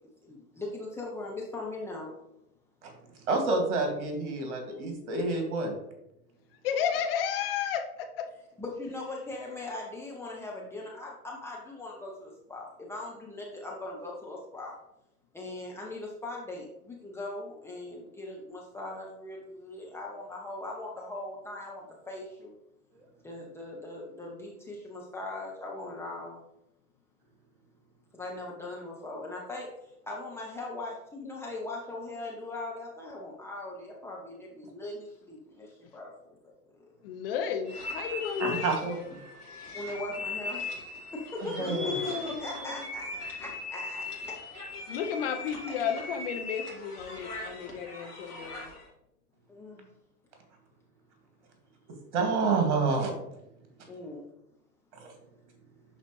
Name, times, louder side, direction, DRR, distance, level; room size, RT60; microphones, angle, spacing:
voice 1, 0.2-2.1 8.6-14.8 15.3-22.5 23.2-26.4 28.1-29.7 30.0-36.5 39.7-40.6 41.1-44.4 49.5-49.9 53.9-54.3, left 2 dB, 5° left, -3 dB, 0.7 m, -40 dB
voice 2, 3.3-5.8 38.4-39.2 41.4-41.9 52.1-53.1 54.9-55.1, right 3 dB, 50° right, 4 dB, 2.2 m, -28 dB
voice 3, 6.6-8.1 37.0-38.8 41.7-42.9 44.9-48.7, left 8 dB, 40° left, 5 dB, 0.7 m, -33 dB
sound 1, 37.7-48.9, left 2 dB, 90° left, 2.1 m, -39 dB
10.5 x 4.1 x 3.1 m, 0.85 s
figure-of-eight pair, 95°, 45 cm